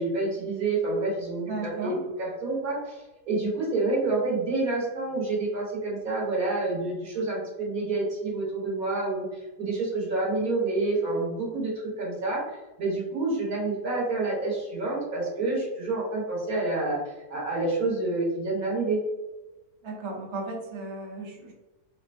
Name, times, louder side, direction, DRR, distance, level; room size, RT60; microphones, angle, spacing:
voice 1, 0.0-11.7 12.0-12.4 12.8-17.0 17.3-19.0, right 2 dB, 65° right, -5 dB, 1.7 m, -28 dB
voice 2, 1.5-2.0 19.8-21.5, right 3 dB, 40° right, -2 dB, 0.4 m, -35 dB
5.0 x 2.2 x 2.5 m, 1.1 s
omnidirectional pair, 1.7 m